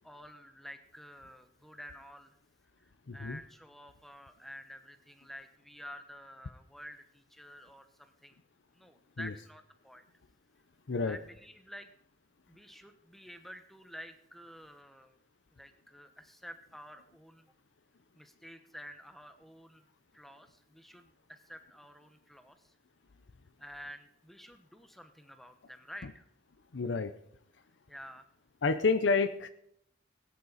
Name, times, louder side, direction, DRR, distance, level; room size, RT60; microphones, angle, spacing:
voice 1, 0.0-2.4 2.8-8.4 8.7-10.0 11.0-11.9 12.5-15.2 15.5-17.5 18.1-19.9 20.1-22.7 23.6-26.3 27.9-28.3, equal, ahead, 8 dB, 1.0 m, -50 dB
voice 2, 3.1-3.4 9.2-9.3 10.9-11.2 26.7-27.1 28.6-29.5, left 4 dB, 85° left, 9 dB, 0.7 m, -29 dB
18.5 x 9.4 x 4.1 m, 0.72 s
head